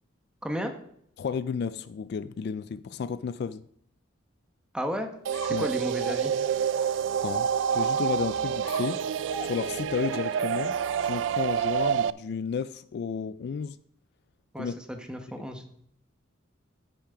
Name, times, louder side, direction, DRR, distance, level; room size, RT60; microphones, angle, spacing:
voice 1, 0.4-0.7 4.7-5.1 5.4-6.3 14.5-15.6, equal, 5° right, 1.0 m, -33 dB
voice 2, 1.2-3.6 5.5-5.7 7.2-9.0 9.4-13.8 14.6-14.7, left 6 dB, 55° left, 0.3 m, -32 dB
sound 1, 5.2-12.1, right 8 dB, 65° right, 0.3 m, -28 dB
sound 2, 5.3-8.2 8.6-11.5, right 2 dB, 20° left, 2.6 m, -41 dB
8.6 x 6.0 x 5.7 m
head